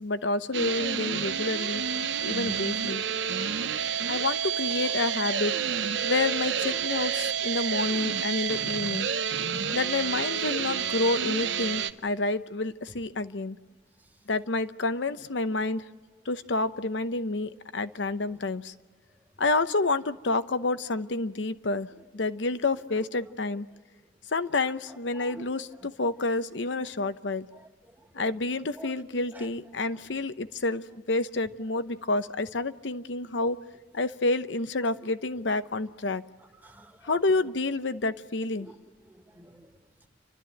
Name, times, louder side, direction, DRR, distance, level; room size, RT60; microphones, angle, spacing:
voice 1, 0.0-1.8 2.2-3.0 4.1-9.1 9.7-13.6 14.3-15.8 16.3-18.7 19.4-23.7 24.3-27.5 28.1-33.6 33.9-36.2 37.0-38.7, left 2 dB, 70° left, 0.8 m, -29 dB
sound 1, 0.5-11.9, right 8 dB, 70° right, 0.9 m, -29 dB
voice 2, 3.6-3.9 4.8-4.9 6.9-7.0 18.3-18.4 22.0-22.1 24.6-25.5 26.9-27.0 27.5-27.7 28.0-28.3 28.8-29.5 36.6-37.1 38.6-38.7 39.0-39.7, right 1 dB, 10° right, 1.7 m, -49 dB
29.5 x 13.0 x 9.1 m
head